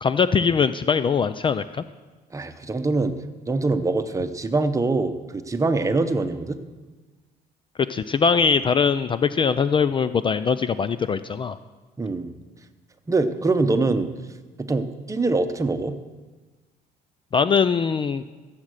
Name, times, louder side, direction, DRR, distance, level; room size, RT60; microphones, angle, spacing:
voice 1, 0.0-1.8 7.9-11.6 17.3-18.2, left 6 dB, 30° left, 13 dB, 0.4 m, -21 dB
voice 2, 2.3-3.2 3.5-6.6 12.0-12.3 13.1-14.1 14.6-15.9, right 3 dB, 20° right, 9 dB, 0.9 m, -24 dB
15.5 x 7.4 x 6.6 m, 1.3 s
cardioid pair, 110°, 17 cm